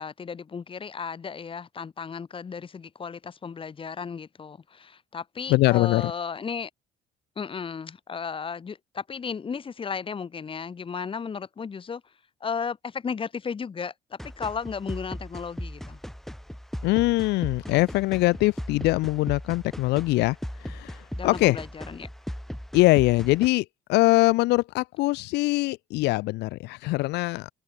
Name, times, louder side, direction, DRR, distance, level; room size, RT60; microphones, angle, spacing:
voice 1, 0.0-6.7 7.4-12.0 12.4-16.0 17.7-17.8 21.1-22.1, left 6 dB, 30° left, 2.1 m, -34 dB
voice 2, 5.5-6.1 16.8-21.6 22.7-27.5, left 20 dB, 85° left, 0.7 m, -23 dB
sound 1, 14.2-23.5, equal, ahead, 6.6 m, -38 dB
open air
cardioid pair, 110°, 17 cm